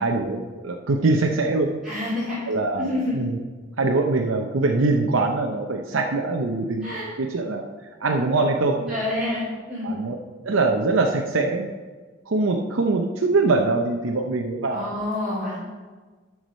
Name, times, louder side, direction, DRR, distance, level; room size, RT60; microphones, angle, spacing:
voice 1, 0.0-1.7 2.5-3.4 3.8-7.7 8.0-9.1 9.8-10.2 10.4-11.7 12.3-14.8, right 3 dB, 90° right, 2 dB, 0.7 m, -23 dB
voice 2, 1.8-2.5 2.8-3.2 6.8-7.1 8.9-9.4 9.7-10.0 14.7-15.6, left 1 dB, 5° right, -13 dB, 3.2 m, -28 dB
11.5 x 4.8 x 5.2 m, 1.4 s
head